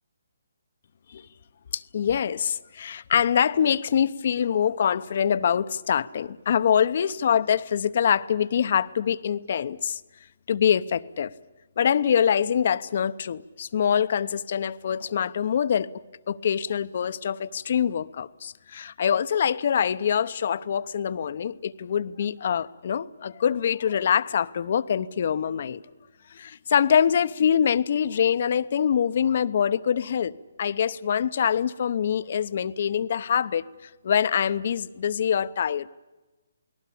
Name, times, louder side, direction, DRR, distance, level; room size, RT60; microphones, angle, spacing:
voice 1, 1.7-10.0 10.5-11.3 11.8-15.9 16.3-25.8 26.3-30.3 30.6-35.9, left 8 dB, 50° left, 15 dB, 0.8 m, -24 dB
29.0 x 19.0 x 8.6 m, 1.1 s
figure-of-eight pair, 145°, 0 cm